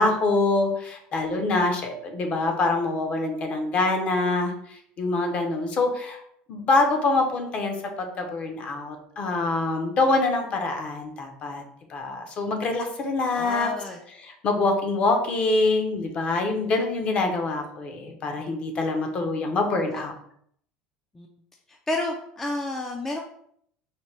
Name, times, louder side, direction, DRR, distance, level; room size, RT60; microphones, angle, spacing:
voice 1, 0.0-6.2 6.5-11.6 11.9-13.7 14.2-20.1, left 3 dB, 35° left, 4 dB, 0.7 m, -25 dB
voice 2, 13.3-14.0 19.9-20.1 21.1-21.3 21.7-23.2, left 2 dB, 10° left, 1 dB, 0.3 m, -31 dB
4.1 x 2.2 x 3.2 m, 0.68 s
cardioid pair, 135°, 3 cm